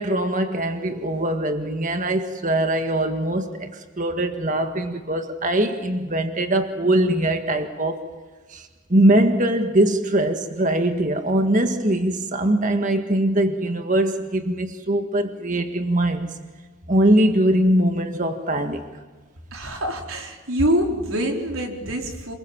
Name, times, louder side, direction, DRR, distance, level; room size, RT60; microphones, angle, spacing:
voice 1, 0.0-8.0 8.5-16.3 16.9-18.8, right 1 dB, 40° right, 1.8 m, -22 dB
voice 2, 19.5-22.3, equal, 85° right, 4.4 m, -25 dB
28.0 x 21.5 x 7.4 m
head